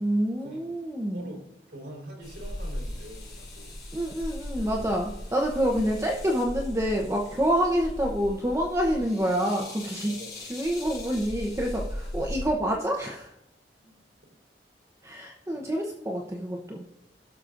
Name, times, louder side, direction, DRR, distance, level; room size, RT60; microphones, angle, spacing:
voice 1, 0.0-1.3 3.9-13.3 15.0-16.8, equal, 15° right, 0 dB, 0.8 m, -27 dB
voice 2, 1.1-3.8 10.1-10.7 12.0-12.1 13.8-13.9 15.5-15.6, right 1 dB, 75° right, -2 dB, 3.7 m, -45 dB
sound 1, 2.2-12.5, left 1 dB, 25° left, 4.0 m, -38 dB
17.0 x 6.6 x 2.5 m, 0.87 s
head